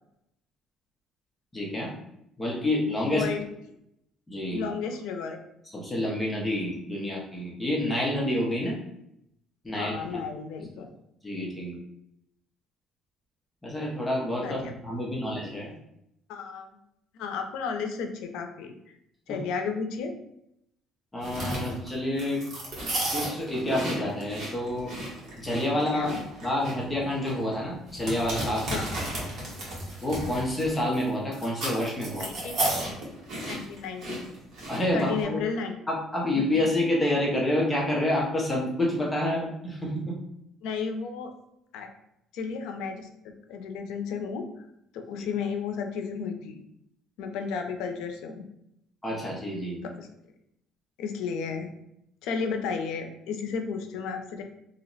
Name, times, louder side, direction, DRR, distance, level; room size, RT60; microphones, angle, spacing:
voice 1, 1.5-1.9 2.4-3.2 4.3-4.7 5.7-8.8 9.6-10.2 11.2-11.8 13.6-15.7 19.3-19.4 21.1-22.4 23.1-24.9 25.4-28.8 30.0-32.3 34.7-35.4 35.9-40.2 49.0-49.8, left 1 dB, 10° left, -4 dB, 0.6 m, -28 dB
voice 2, 3.0-3.4 4.5-5.4 9.8-10.9 14.4-14.7 16.3-16.8 17.1-18.8 19.3-20.1 25.9-26.2 28.7-28.8 32.2-33.0 33.5-34.3 34.9-35.7 36.3-36.5 40.6-41.3 41.7-41.9 42.3-44.5 44.9-46.6 47.2-48.5 49.8-50.1 51.0-51.7 52.2-54.4, left 5 dB, 85° left, 5 dB, 0.4 m, -33 dB
sound 1, 21.2-35.2, right 1 dB, 45° right, 1.1 m, -34 dB
2.8 x 2.1 x 3.8 m, 0.79 s
cardioid pair, 170°, 0 cm